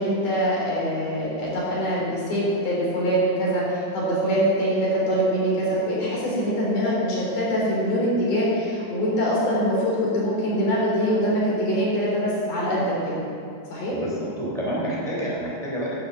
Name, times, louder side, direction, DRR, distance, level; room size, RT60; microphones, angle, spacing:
voice 1, 0.0-13.3 13.7-14.0, equal, 80° left, -6 dB, 5.5 m, -23 dB
voice 2, 13.9-16.0, right 1 dB, 10° right, -6 dB, 3.0 m, -28 dB
11.0 x 8.1 x 8.1 m, 2.5 s
omnidirectional pair, 3.6 m